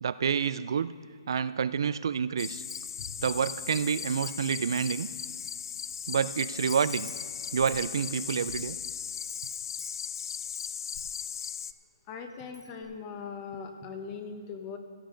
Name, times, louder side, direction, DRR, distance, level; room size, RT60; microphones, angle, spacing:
voice 1, 0.0-0.9 1.3-2.6 3.2-5.1 6.1-7.1 7.5-8.8, right 7 dB, 65° right, 15 dB, 0.4 m, -28 dB
sound 1, 2.4-11.7, left 7 dB, 55° left, 0.4 m, -37 dB
Wind chime, 2.5-3.3 3.7-6.0 6.2-6.3 6.7-10.7 10.9-11.7 12.0-12.1 12.4-12.8, left 3 dB, 75° left, 3.2 m, -50 dB
voice 2, 12.1-14.8, left 5 dB, 25° left, 5 dB, 1.2 m, -40 dB
16.0 x 10.0 x 3.9 m, 2.1 s
hypercardioid pair, 160°, 3 cm